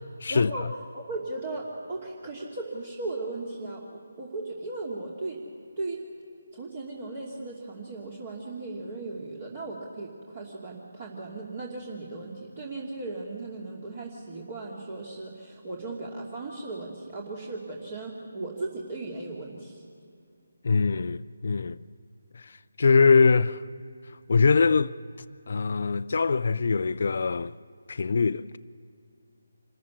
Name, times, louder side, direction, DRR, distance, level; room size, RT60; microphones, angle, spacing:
voice 1, 0.3-0.6 0.9-5.4 5.8-6.0 6.5-19.8, right 2 dB, 40° right, 2.7 m, -37 dB
voice 2, 20.6-21.8 22.8-23.6 24.3-24.9 25.5-27.5 27.9-28.6, left 4 dB, 55° left, 0.5 m, -22 dB
26.0 x 14.5 x 8.5 m
figure-of-eight pair, 155°, 0 cm